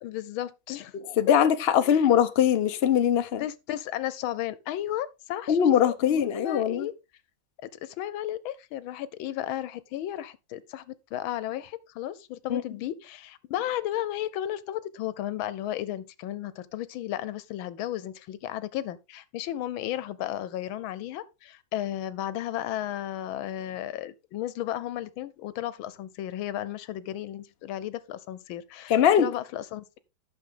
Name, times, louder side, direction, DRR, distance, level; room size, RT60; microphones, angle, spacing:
voice 1, 0.0-1.0 1.8-2.1 3.4-6.9 7.6-30.0, left 12 dB, 90° left, 1.6 m, -34 dB
voice 2, 1.2-3.4 5.5-6.9 12.5-12.6 28.9-29.3, left 9 dB, 45° left, 0.8 m, -21 dB
11.5 x 6.5 x 3.8 m
omnidirectional pair, 2.1 m